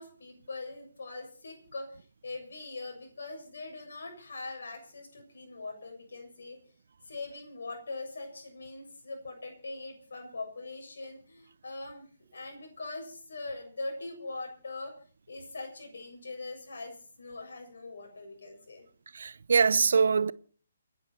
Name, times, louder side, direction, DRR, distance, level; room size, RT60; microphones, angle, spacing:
voice 1, 0.0-6.6 7.1-15.0 15.3-18.9, left 3 dB, 60° left, 7.1 m, -42 dB
voice 2, 19.1-20.3, right 5 dB, 55° right, 0.7 m, -23 dB
29.5 x 10.5 x 4.4 m
figure-of-eight pair, 135°, 0 cm